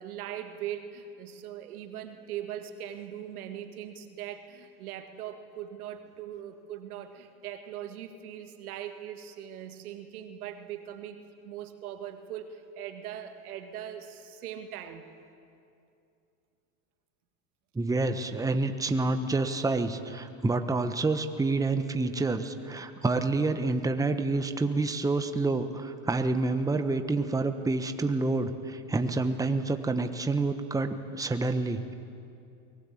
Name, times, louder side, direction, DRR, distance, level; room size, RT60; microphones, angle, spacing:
voice 1, 0.0-11.2 11.4-15.1, right 10 dB, 85° right, 7 dB, 2.0 m, -40 dB
voice 2, 17.7-31.9, right 3 dB, 10° right, 8 dB, 1.2 m, -28 dB
23.5 x 19.5 x 8.6 m, 2.6 s
supercardioid pair, 105°, 43 cm